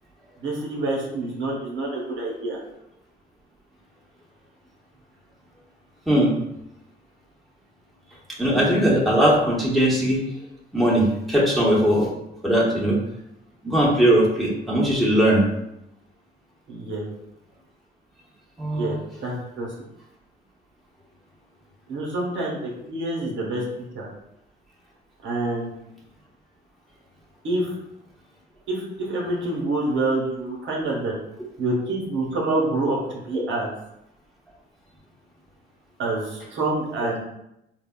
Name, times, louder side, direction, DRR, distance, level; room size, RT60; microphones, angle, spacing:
voice 1, 0.4-2.6 16.7-17.0 18.7-18.9 19.2-19.7 21.9-23.6 23.9-24.1 25.2-25.7 27.4-27.7 28.7-31.1 31.6-33.7 36.0-37.2, right 2 dB, 70° right, -2 dB, 0.9 m, -27 dB
voice 2, 8.4-10.2 10.7-12.1 12.4-13.0 13.6-15.4 18.6-19.0, right 1 dB, ahead, -6 dB, 1.0 m, -19 dB
4.6 x 2.1 x 2.2 m, 0.84 s
cardioid pair, 90°, 20 cm